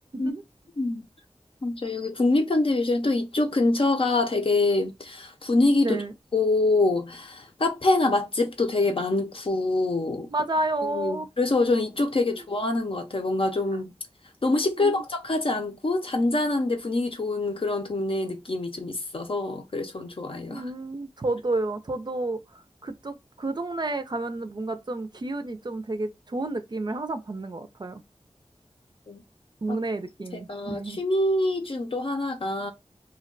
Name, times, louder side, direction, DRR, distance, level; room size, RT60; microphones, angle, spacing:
voice 1, 1.6-6.0 6.3-10.3 10.8-13.9 14.4-20.6 29.1-29.2 29.7-29.8 30.3-32.7, left 2 dB, 55° left, 0.6 m, -25 dB
voice 2, 5.8-6.1 10.3-11.3 12.3-12.4 14.8-15.0 20.4-28.0 29.6-31.0, right 2 dB, 40° right, 0.4 m, -31 dB
2.2 x 2.2 x 3.8 m
wide cardioid pair, 55°, 11 cm